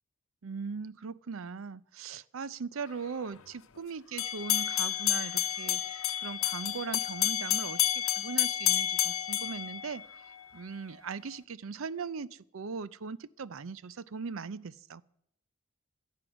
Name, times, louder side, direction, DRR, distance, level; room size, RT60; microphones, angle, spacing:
voice 1, 0.4-10.0 10.5-15.0, right 5 dB, 70° right, 0.5 m, -39 dB
sound 1, 4.2-10.4, left 12 dB, 75° left, 0.8 m, -30 dB
17.5 x 12.5 x 6.1 m
head